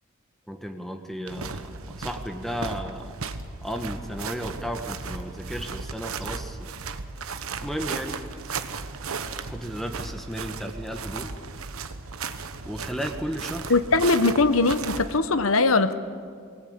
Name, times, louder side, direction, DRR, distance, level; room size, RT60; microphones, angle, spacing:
voice 1, 0.5-3.2 3.6-6.8 7.6-8.2 9.5-11.3 12.6-13.7, equal, ahead, 5 dB, 1.1 m, -34 dB
sound 1, 1.3-15.2, right 4 dB, 80° right, 1.1 m, -35 dB
voice 2, 13.7-15.9, left 3 dB, 70° left, 12 dB, 1.0 m, -21 dB
23.5 x 18.0 x 8.7 m, 2.2 s
head